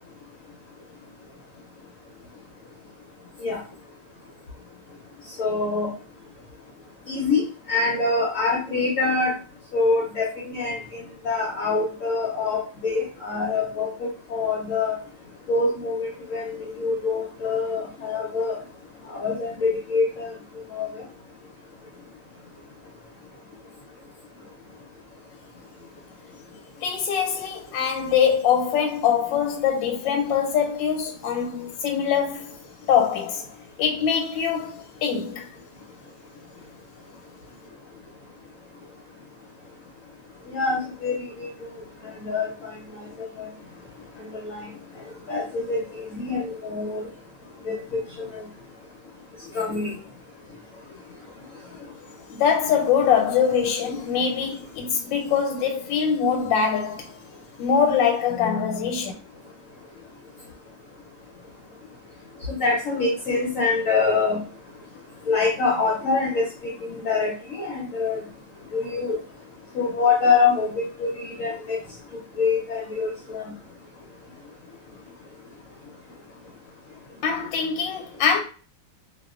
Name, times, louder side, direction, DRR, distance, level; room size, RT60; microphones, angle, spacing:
voice 1, 5.4-5.9 7.1-7.4 7.7-9.3 9.7-10.8 11.2-15.0 15.5-18.5 19.1-20.3 20.7-21.0 40.5-41.5 42.0-42.7 43.4-43.5 44.4-44.6 45.3-47.1 47.6-48.4 49.5-49.9 62.5-64.4 65.3-66.5 66.8-68.2 68.7-69.2 69.7-71.8 72.4-73.4, left 4 dB, 65° left, 0.8 m, -25 dB
voice 2, 26.8-32.6 32.9-33.4 33.8-35.5 52.3-57.1 57.6-59.1 77.2-78.4, left 7 dB, 85° left, 1.3 m, -23 dB
2.8 x 2.3 x 2.4 m
omnidirectional pair, 2.0 m